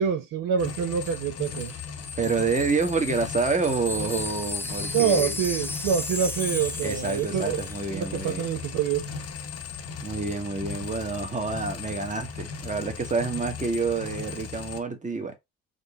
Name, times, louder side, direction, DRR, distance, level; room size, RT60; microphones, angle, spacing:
voice 1, 0.0-1.7 4.9-7.6 7.9-9.0, right 8 dB, 65° right, 0.6 m, -26 dB
sound 1, 0.6-14.8, left 6 dB, 45° left, 0.7 m, -37 dB
Wind chime, 0.7-7.9 8.2-8.4, left 2 dB, 5° left, 0.4 m, -36 dB
voice 2, 2.2-5.4 6.8-8.4 10.0-15.4, right 4 dB, 20° right, 1.0 m, -28 dB
3.7 x 2.0 x 3.4 m
supercardioid pair, 55°, 36 cm